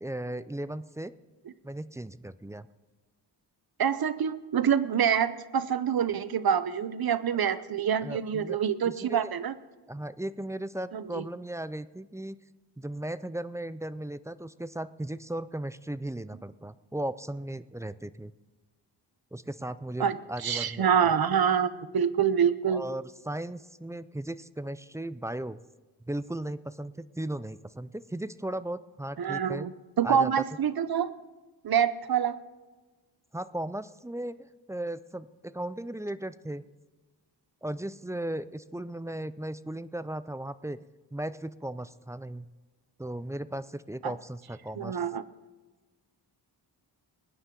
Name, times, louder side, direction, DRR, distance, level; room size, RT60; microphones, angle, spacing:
voice 1, 0.0-1.1 1.6-2.7 8.0-8.6 8.8-9.2 9.9-12.4 12.8-18.3 19.3-21.1 22.7-25.6 26.1-29.7 30.0-30.3 33.3-34.4 34.7-36.6 37.6-40.8 41.1-42.5 43.0-45.0, right 1 dB, 10° right, 15 dB, 0.3 m, -36 dB
voice 2, 3.8-9.5 10.9-11.2 20.0-20.2 20.4-22.8 29.2-29.7 30.0-31.1 31.6-32.4 44.0-44.1 44.8-45.2, right 8 dB, 55° right, 15 dB, 0.8 m, -26 dB
21.0 x 9.7 x 3.8 m, 1.3 s
wide cardioid pair, 95°, 43 cm